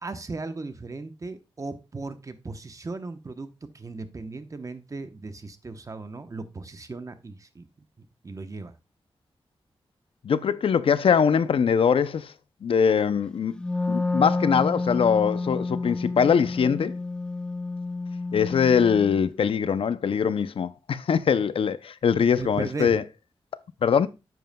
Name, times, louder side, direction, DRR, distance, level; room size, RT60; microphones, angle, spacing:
voice 1, 0.0-7.7 8.0-8.7 22.4-23.0, right 3 dB, 35° right, 0.8 m, -37 dB
voice 2, 10.2-12.3 12.6-13.5 13.9-16.9 18.3-23.0 23.8-24.1, left 7 dB, 70° left, 0.4 m, -22 dB
Wind instrument woodwind instrument, 13.5-19.2, left 3 dB, 10° left, 0.6 m, -29 dB
10.5 x 7.7 x 2.2 m
wide cardioid pair, 105°, 10 cm